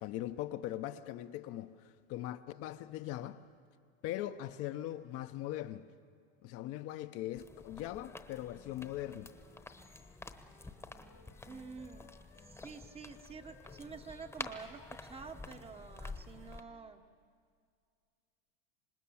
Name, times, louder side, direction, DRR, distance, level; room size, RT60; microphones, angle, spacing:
voice 1, 0.0-1.7 2.1-3.4 4.0-5.9 6.4-9.3, left 13 dB, 50° left, 0.8 m, -40 dB
sound 1, 7.3-16.6, left 3 dB, 10° left, 1.0 m, -49 dB
Wind instrument woodwind instrument, 8.6-17.0, left 6 dB, 85° left, 3.2 m, -65 dB
voice 2, 11.4-12.1 12.4-17.0, right 5 dB, 20° right, 1.0 m, -49 dB
26.0 x 19.5 x 7.2 m
supercardioid pair, 125°, 31 cm